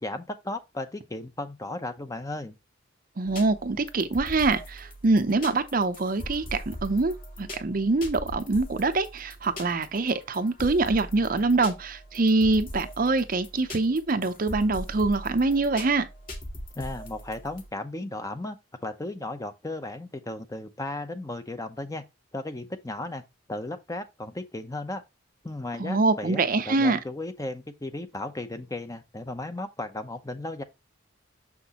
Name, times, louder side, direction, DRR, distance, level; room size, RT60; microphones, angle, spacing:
voice 1, 0.0-2.5 16.8-18.6 18.8-22.0 22.3-23.2 23.5-25.0 25.4-30.6, left 2 dB, 15° left, 0.7 m, -35 dB
voice 2, 3.2-16.1 25.8-27.0, right 3 dB, 45° right, 0.6 m, -24 dB
sound 1, 3.3-17.7, equal, 45° left, 1.9 m, -41 dB
6.4 x 6.0 x 2.9 m
head